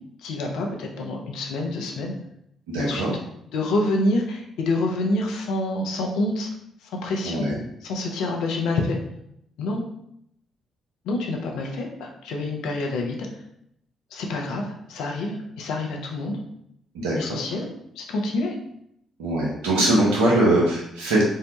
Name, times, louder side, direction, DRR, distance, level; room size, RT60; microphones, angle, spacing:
voice 1, 0.2-2.1 2.8-3.1 3.5-6.5 6.8-7.5 7.8-9.0 9.6-9.8 11.0-13.2 14.1-16.4 17.2-17.7 18.0-18.6, left 2 dB, 70° left, 1 dB, 0.4 m, -27 dB
voice 2, 2.7-3.1 7.2-7.6 16.9-17.4 19.2-21.2, right 1 dB, 80° right, -4 dB, 0.6 m, -21 dB
2.7 x 2.1 x 2.9 m, 0.75 s
hypercardioid pair, 45°, 0 cm